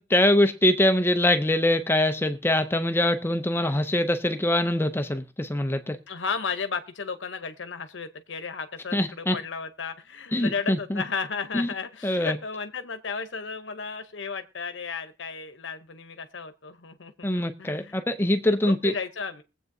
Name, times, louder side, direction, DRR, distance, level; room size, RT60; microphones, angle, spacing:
voice 1, 0.0-6.0 8.9-9.4 10.3-11.0 11.5-11.7 12.0-12.4 17.2-18.9, left 1 dB, 10° left, 0.5 m, -23 dB
voice 2, 6.1-18.0 18.6-19.4, left 5 dB, 80° left, 0.8 m, -34 dB
22.0 x 7.9 x 2.7 m
head